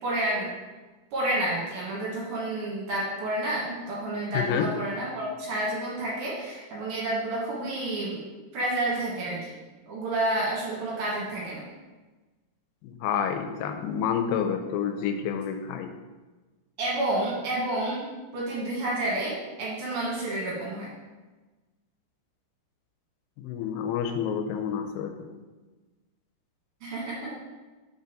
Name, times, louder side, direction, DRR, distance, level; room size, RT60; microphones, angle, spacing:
voice 1, 0.0-0.5 1.1-8.2 8.5-9.5 9.9-11.6 16.8-20.9 26.8-27.3, right 1 dB, 60° right, -5 dB, 3.0 m, -30 dB
voice 2, 4.3-4.7 12.8-15.9 23.4-25.3, left 8 dB, 85° left, 6 dB, 3.0 m, -29 dB
6.5 x 5.5 x 5.1 m, 1.2 s
omnidirectional pair, 5.5 m